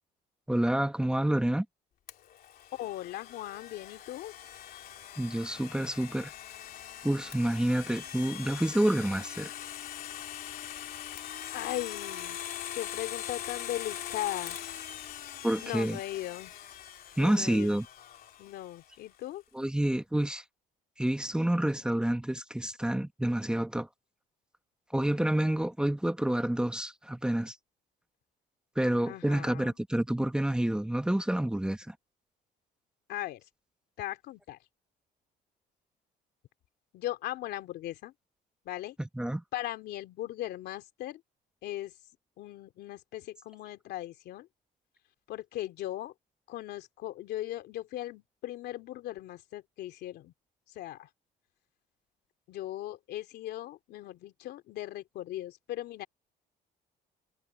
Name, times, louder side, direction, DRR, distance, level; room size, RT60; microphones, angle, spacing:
voice 1, 0.5-1.6 5.2-6.3 7.0-9.5 15.4-16.0 17.2-17.9 19.5-20.4 21.0-23.9 24.9-27.6 28.7-31.9 39.1-39.4, right 1 dB, 5° right, 1.2 m, -28 dB
Domestic sounds home sounds, 2.1-18.9, left 11 dB, 60° left, 3.3 m, -42 dB
voice 2, 2.7-4.3 11.5-12.4 12.7-14.6 15.6-16.5 17.2-17.8 18.4-19.4 29.0-29.7 33.1-33.4 34.0-34.6 36.9-38.1 38.6-39.0 39.5-41.2 41.6-41.9 42.4-44.5 45.3-46.1 46.5-50.3 50.7-51.1 52.5-56.1, left 14 dB, 75° left, 3.0 m, -38 dB
cardioid pair, 110°, 17 cm